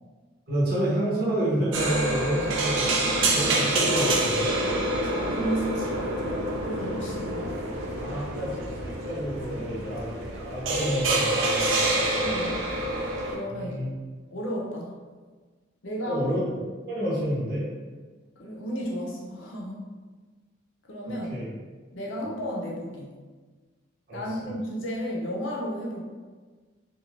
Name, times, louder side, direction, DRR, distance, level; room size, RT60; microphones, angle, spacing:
voice 1, 0.5-4.5 7.9-12.3 13.5-13.9 16.0-17.7 21.1-21.5 22.2-22.3 24.1-24.5, equal, 50° right, -7 dB, 0.8 m, -30 dB
sound 1, 1.7-13.4, right 1 dB, 90° right, 0.5 m, -27 dB
voice 2, 5.0-7.5 9.5-9.9 12.0-12.7 13.3-13.8 14.3-15.0 15.8-16.3 18.4-19.8 20.9-21.3 21.9-23.2 24.1-26.0, equal, 85° left, -2 dB, 0.6 m, -34 dB
2.5 x 2.3 x 3.1 m, 1.4 s
head